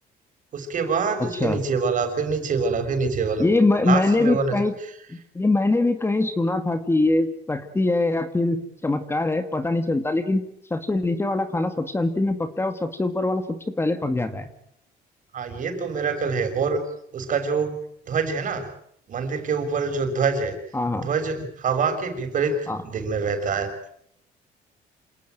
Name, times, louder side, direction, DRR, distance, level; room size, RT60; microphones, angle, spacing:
voice 1, 0.5-3.4 3.8-4.6 15.3-16.8 17.1-17.8 18.1-18.7 19.1-20.6 21.0-23.7, right 5 dB, 50° right, 6 dB, 6.2 m, -25 dB
voice 2, 3.4-4.7 5.1-10.4 10.7-14.5 20.7-21.1 22.7-22.8, left 2 dB, 15° left, 9 dB, 2.0 m, -23 dB
28.0 x 17.5 x 9.2 m, 0.71 s
cardioid pair, 110°, 17 cm